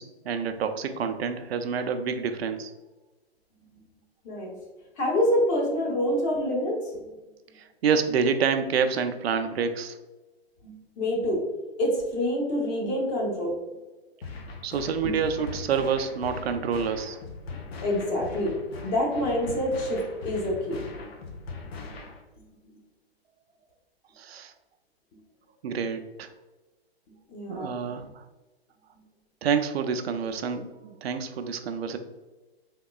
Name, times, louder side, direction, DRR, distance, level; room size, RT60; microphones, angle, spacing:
voice 1, 0.0-2.7 7.8-10.0 14.6-17.2 24.2-24.5 25.6-26.3 27.5-28.0 29.4-32.0, right 6 dB, 75° right, 8 dB, 0.4 m, -27 dB
voice 2, 5.0-7.0 10.6-11.4 11.8-13.6 15.0-15.2 17.8-18.6 18.8-20.8 27.3-28.0, left 1 dB, 25° left, -1 dB, 0.7 m, -27 dB
sound 1, 14.2-22.2, left 3 dB, 70° left, 0.7 m, -40 dB
3.7 x 2.9 x 2.2 m, 1.1 s
hypercardioid pair, 135°, 32 cm